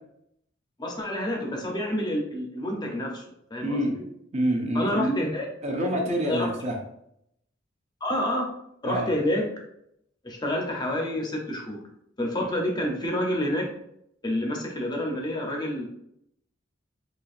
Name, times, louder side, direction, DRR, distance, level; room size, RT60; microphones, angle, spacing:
voice 1, 0.8-3.2 3.5-4.0 4.7-5.5 6.2-6.5 8.0-8.5 8.8-9.4 10.2-11.8 12.2-13.7 14.2-15.9, left 1 dB, 20° left, 0 dB, 0.7 m, -28 dB
voice 2, 3.6-4.0 4.3-5.1 5.6-6.8 8.9-9.1, right 1 dB, 35° right, 1 dB, 0.6 m, -26 dB
4.3 x 2.8 x 2.5 m, 0.75 s
head